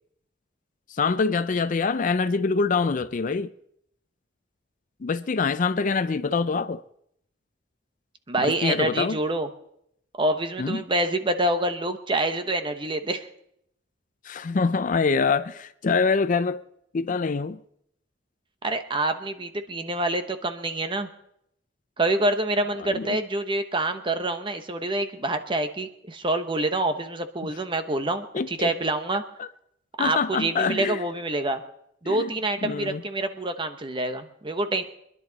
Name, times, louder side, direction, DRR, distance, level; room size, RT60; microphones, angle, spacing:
voice 1, 0.9-3.5 5.0-6.8 8.4-9.2 10.6-10.8 14.2-16.6 16.9-17.6 22.8-23.2 28.3-28.7 29.4-29.5 30.0-31.0 32.0-32.3 32.6-33.0, left 4 dB, 45° left, 0.5 m, -25 dB
voice 2, 8.3-9.5 10.2-13.3 18.6-21.1 22.0-29.2 30.0-31.6 32.0-34.8, right 2 dB, 30° right, 1.0 m, -26 dB
25.0 x 11.0 x 4.0 m
head